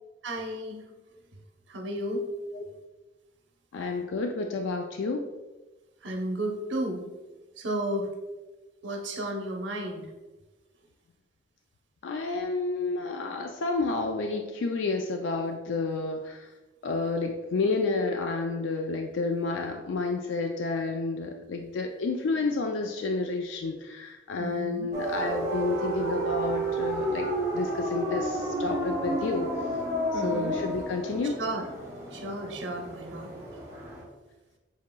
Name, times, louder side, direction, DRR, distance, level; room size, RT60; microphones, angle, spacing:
voice 1, 0.2-0.8 1.7-2.2 6.0-7.0 7.6-8.1 8.8-10.1 24.4-24.9 30.1-30.6 31.4-31.7 32.1-33.3, right 1 dB, 85° right, 1 dB, 0.8 m, -33 dB
voice 2, 3.7-5.2 12.0-16.5 16.8-27.3 27.5-29.5 30.1-31.4, left 3 dB, 85° left, 4 dB, 0.4 m, -30 dB
sound 1, 24.9-34.0, right 1 dB, 15° right, 0.8 m, -31 dB
7.1 x 2.9 x 2.2 m, 1.2 s
head